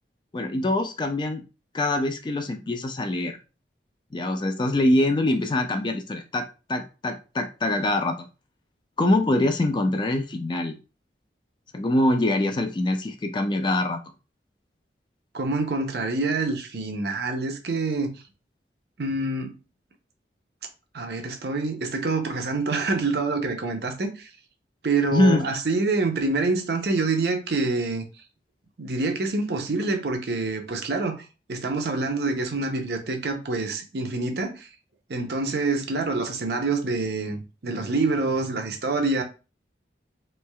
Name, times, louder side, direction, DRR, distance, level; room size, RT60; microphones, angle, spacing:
voice 1, 0.3-1.4 1.7-3.4 4.1-8.3 9.0-10.8 11.7-14.0 25.1-25.5, left 1 dB, 25° left, 0.3 m, -24 dB
voice 2, 15.3-18.1 19.0-19.6 20.9-24.3 24.8-28.0 28.8-34.7 35.1-39.2, right 3 dB, 65° right, 0.6 m, -26 dB
3.1 x 3.1 x 2.2 m
head